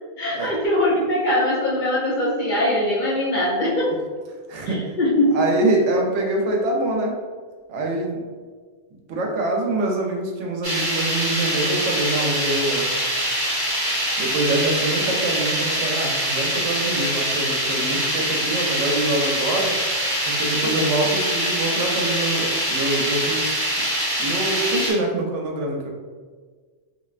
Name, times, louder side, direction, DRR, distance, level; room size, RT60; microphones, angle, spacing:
voice 1, 0.2-3.9 4.7-5.4 20.6-20.8, left 1 dB, 55° left, -4 dB, 0.6 m, -22 dB
voice 2, 4.5-4.8 5.3-7.2 7.7-8.2 9.1-12.9 14.2-19.7 20.3-23.7 24.2-25.9, right 2 dB, 90° right, 0 dB, 0.9 m, -25 dB
sound 1, 10.6-24.9, equal, 20° right, 1.0 m, -24 dB
3.1 x 2.5 x 2.4 m, 1.5 s
omnidirectional pair, 1.2 m